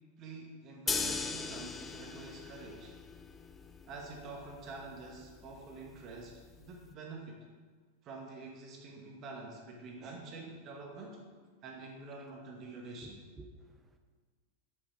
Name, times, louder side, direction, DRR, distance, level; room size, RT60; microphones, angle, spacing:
voice 1, 0.2-2.9 3.9-7.4 8.0-11.3 11.6-13.2, right 3 dB, 35° right, 0 dB, 1.9 m, -47 dB
sound 1, 0.9-6.9, left 4 dB, 15° left, 0.6 m, -40 dB
voice 2, 13.0-14.0, right 2 dB, 15° right, 6 dB, 1.0 m, -53 dB
9.5 x 7.4 x 4.7 m, 1.5 s
figure-of-eight pair, 90°, 0 cm